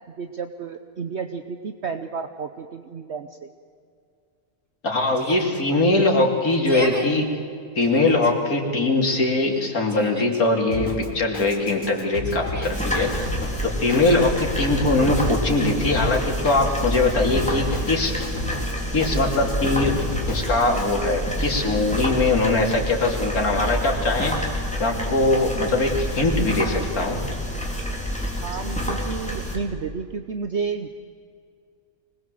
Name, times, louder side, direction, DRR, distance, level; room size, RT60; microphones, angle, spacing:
voice 1, 0.2-3.5 28.4-30.9, right 5 dB, 55° right, 8 dB, 1.1 m, -31 dB
voice 2, 4.8-7.4 7.8-13.3 13.6-18.1 18.9-20.0 20.3-24.4 24.8-27.2, left 2 dB, 80° left, 1 dB, 3.4 m, -21 dB
Yell, 5.1-5.6 6.5-7.1 7.8-8.3 9.5-10.4 12.2-12.9, right 1 dB, 10° right, 2.2 m, -34 dB
Drum kit, 10.7-20.9, left 2 dB, 60° left, 3.6 m, -33 dB
sound 1, 12.7-29.6, equal, 5° left, 3.6 m, -28 dB
25.0 x 20.5 x 7.7 m, 2.3 s
omnidirectional pair, 1.5 m